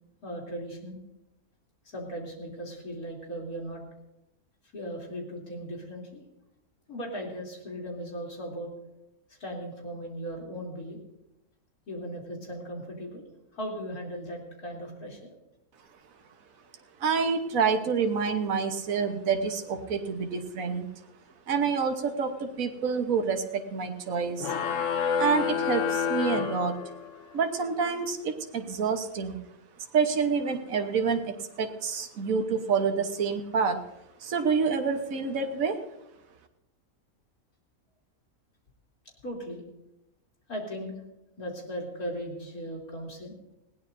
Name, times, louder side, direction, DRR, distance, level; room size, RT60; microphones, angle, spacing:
voice 1, 0.2-1.0 1.9-3.8 4.7-6.2 6.9-8.7 9.4-11.0 11.9-15.3 39.2-39.6 40.5-40.9 41.4-43.4, equal, 90° left, -1 dB, 3.8 m, -37 dB
voice 2, 17.0-20.9 21.5-24.5 25.2-26.8 27.3-29.4 29.9-33.8 34.2-35.8, right 5 dB, 70° right, 5 dB, 1.6 m, -28 dB
sound 1, 24.4-27.3, left 7 dB, 60° left, 1.1 m, -29 dB
20.0 x 17.0 x 2.7 m, 0.90 s
omnidirectional pair, 1.5 m